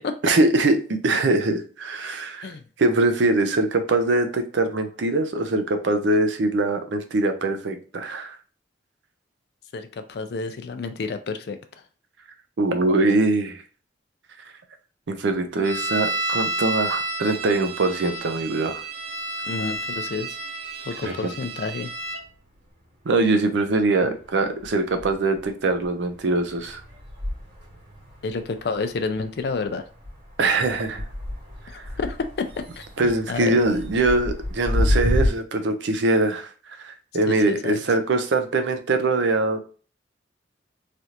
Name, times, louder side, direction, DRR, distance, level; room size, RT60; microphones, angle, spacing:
voice 1, 0.2-2.5 2.8-8.4 12.6-13.6 15.1-18.8 21.0-21.1 23.1-26.8 30.4-31.0 33.0-39.6, right 2 dB, 80° right, 7 dB, 0.5 m, -22 dB
voice 2, 9.7-11.6 19.5-20.4 20.9-21.9 24.0-24.1 28.2-29.8 31.7-32.5 32.8-33.6 37.3-37.8, left 4 dB, 60° left, 9 dB, 0.4 m, -30 dB
sound 1, 15.6-22.2, right 2 dB, 40° right, 0.8 m, -30 dB
sound 2, 22.0-23.2 23.6-35.3, left 1 dB, 55° right, 1.7 m, -31 dB
3.3 x 2.4 x 2.8 m, 0.39 s
head